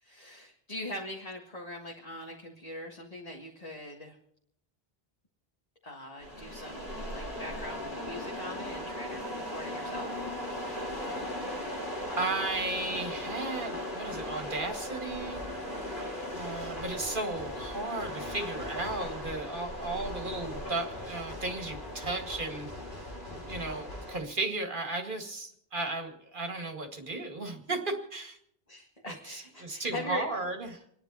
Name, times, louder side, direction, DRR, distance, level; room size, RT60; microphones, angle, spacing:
voice 1, 0.0-4.2 5.8-10.2 23.3-23.6 28.7-30.3, left 1 dB, 40° left, -1 dB, 1.8 m, -42 dB
sound 1, 6.2-24.2, left 1 dB, 55° left, 3.3 m, -38 dB
voice 2, 12.2-15.4 16.3-22.7 23.5-28.4 29.3-30.8, right 2 dB, 55° right, 4 dB, 2.1 m, -35 dB
28.5 x 10.5 x 4.1 m, 0.75 s
omnidirectional pair, 1.0 m